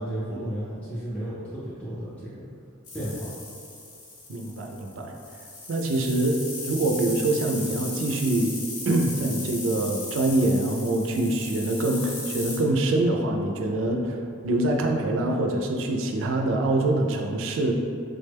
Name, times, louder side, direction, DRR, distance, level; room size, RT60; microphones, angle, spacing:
voice 1, 0.0-2.5 2.9-3.3, right 1 dB, 5° left, -10 dB, 0.4 m, -33 dB
sound 1, 2.8-12.6, left 2 dB, 85° left, 0.8 m, -37 dB
voice 2, 4.3-5.2 5.7-8.5 8.8-17.7, right 2 dB, 60° right, 2 dB, 0.4 m, -25 dB
3.5 x 2.1 x 3.3 m, 2.4 s
head